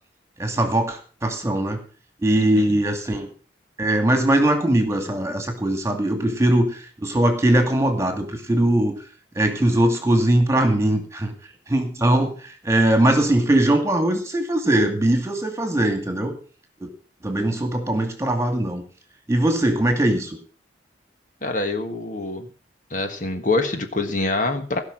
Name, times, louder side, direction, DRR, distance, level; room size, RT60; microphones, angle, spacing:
voice 1, 0.4-1.8 2.2-3.3 3.8-9.0 9.4-11.3 11.7-12.3 12.6-16.4 16.8-16.9 17.2-18.8 19.3-20.4, right 1 dB, 15° right, 5 dB, 2.3 m, -20 dB
voice 2, 2.4-2.7 21.4-22.5 22.9-24.8, left 2 dB, 45° left, 6 dB, 1.5 m, -25 dB
16.5 x 6.0 x 7.4 m, 0.40 s
head